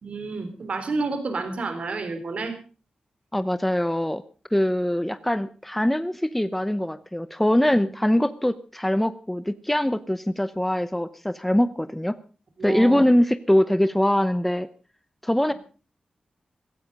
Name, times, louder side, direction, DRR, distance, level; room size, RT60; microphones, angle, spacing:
voice 1, 0.0-2.5 7.7-7.8 12.6-13.1, right 3 dB, 60° right, 7 dB, 3.6 m, -30 dB
voice 2, 3.3-4.2 4.5-12.1 12.6-14.7 15.2-15.5, left 1 dB, 5° left, 13 dB, 0.8 m, -22 dB
16.0 x 15.5 x 5.2 m, 0.38 s
wide cardioid pair, 115°, 2 cm